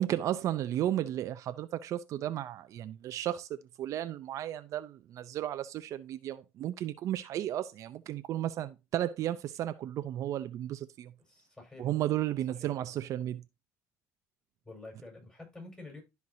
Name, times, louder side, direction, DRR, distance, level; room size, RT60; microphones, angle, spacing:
voice 1, 0.0-11.1 11.8-13.4, right 12 dB, 60° right, 0.6 m, -34 dB
voice 2, 11.2-11.9 12.6-12.7 14.6-16.0, left 2 dB, 15° left, 5.1 m, -48 dB
12.5 x 4.7 x 2.8 m
cardioid pair, 115°, 6 cm